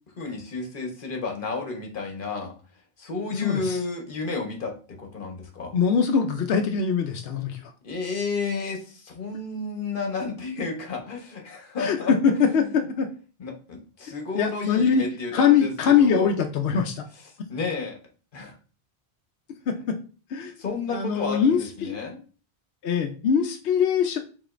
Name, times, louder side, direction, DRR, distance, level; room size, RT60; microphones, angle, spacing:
voice 1, 0.2-2.5 3.0-5.8 7.8-12.8 13.4-16.3 17.5-18.0 18.3-18.6 20.6-22.2, left 4 dB, 55° left, 3 dB, 1.1 m, -32 dB
voice 2, 3.3-3.8 5.7-7.6 11.8-12.0 12.2-13.1 14.4-15.0 15.3-17.0 19.7-20.0 20.3-20.5 20.9-22.0 22.8-24.2, left 6 dB, 70° left, 4 dB, 0.8 m, -22 dB
4.9 x 3.7 x 2.5 m, 0.37 s
omnidirectional pair, 1.1 m